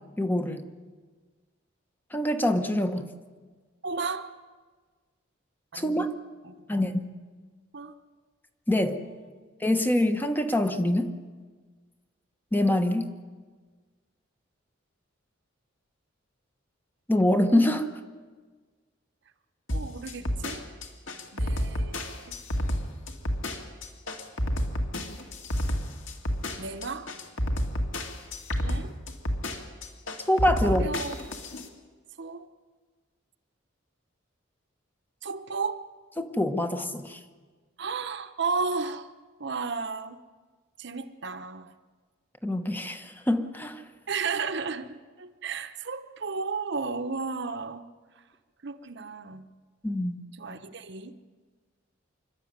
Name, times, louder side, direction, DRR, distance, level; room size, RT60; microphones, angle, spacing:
voice 1, 0.2-0.7 2.1-3.1 5.7-6.1 6.7-7.1 8.7-9.0 9.6-11.1 12.5-13.1 17.1-17.9 30.3-30.9 36.2-37.2 42.4-43.8 49.8-50.2, left 1 dB, 10° left, 7 dB, 1.2 m, -25 dB
voice 2, 3.8-4.3 5.7-6.0 6.4-6.6 7.7-7.9 8.8-9.5 19.7-20.7 21.3-22.3 26.6-27.1 28.6-28.9 30.6-31.3 32.2-32.5 35.2-35.8 37.8-39.1 39.4-40.2 40.8-41.7 44.1-47.8 48.6-49.5 50.4-51.1, right 4 dB, 60° right, 10 dB, 1.0 m, -34 dB
sound 1, 19.7-31.7, equal, 75° left, 2.4 m, -30 dB
26.5 x 12.5 x 9.6 m, 1.4 s
head